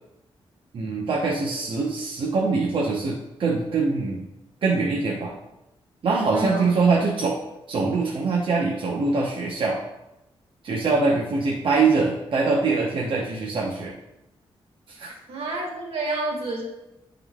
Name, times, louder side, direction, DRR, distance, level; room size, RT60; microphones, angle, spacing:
voice 1, 0.7-4.3 4.6-5.3 6.0-7.4 7.7-9.8 10.6-13.9 14.9-15.1, right 4 dB, 60° right, -2 dB, 0.9 m, -23 dB
voice 2, 6.3-6.7 15.3-16.6, right 2 dB, 85° right, -1 dB, 1.8 m, -29 dB
9.8 x 3.8 x 3.6 m, 0.93 s
wide cardioid pair, 110°, 10 cm